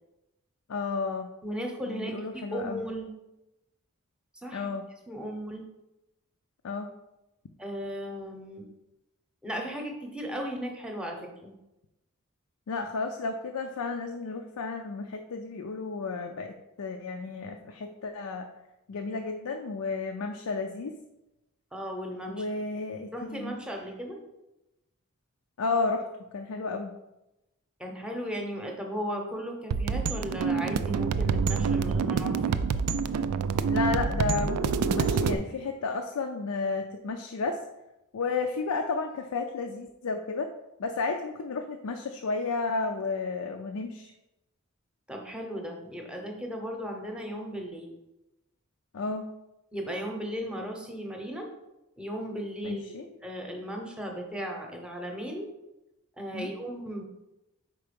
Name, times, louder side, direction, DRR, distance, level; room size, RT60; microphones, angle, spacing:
voice 1, 0.7-1.3 1.9-2.8 4.5-4.8 6.6-6.9 12.7-18.5 18.9-20.9 22.3-23.6 25.6-26.9 33.7-37.6 38.1-40.5 40.8-44.1 48.9-49.3 52.6-53.0 56.3-56.5, left 4 dB, 80° left, 4 dB, 0.5 m, -32 dB
voice 2, 1.4-3.1 4.4-4.7 5.1-5.6 7.6-8.6 9.4-11.5 21.7-22.4 23.1-24.2 27.8-32.8 45.1-47.9 49.7-51.5 52.0-55.5 56.2-57.0, equal, 5° right, 1 dB, 0.8 m, -36 dB
sound 1, 29.7-35.3, right 5 dB, 85° right, 0.3 m, -27 dB
4.6 x 4.5 x 5.1 m, 0.95 s
head